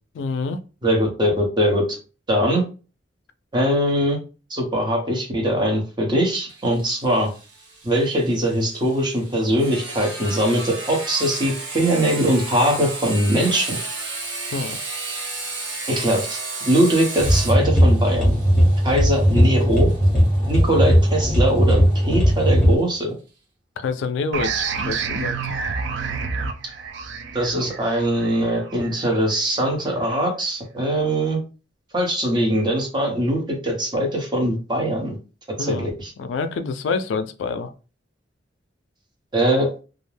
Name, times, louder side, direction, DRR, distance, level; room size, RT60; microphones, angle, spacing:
voice 1, 0.1-0.6 14.5-14.8 23.8-25.5 35.6-35.9 36.2-37.7, left 4 dB, 75° left, 0.3 m, -27 dB
voice 2, 0.8-2.0 2.3-2.6 3.5-4.2 4.5-7.3 7.8-13.8 15.9-16.4 16.6-18.4 18.8-19.9 20.5-23.1 27.3-31.4 31.9-35.1 35.6-36.1 39.3-39.7, right 1 dB, 25° right, 0.8 m, -21 dB
Sawing, 6.5-21.9, right 3 dB, 85° right, 0.9 m, -34 dB
sound 1, 17.2-22.7, equal, 5° left, 1.0 m, -17 dB
sound 2, 24.3-29.7, right 5 dB, 65° right, 0.4 m, -29 dB
2.4 x 2.1 x 3.2 m
head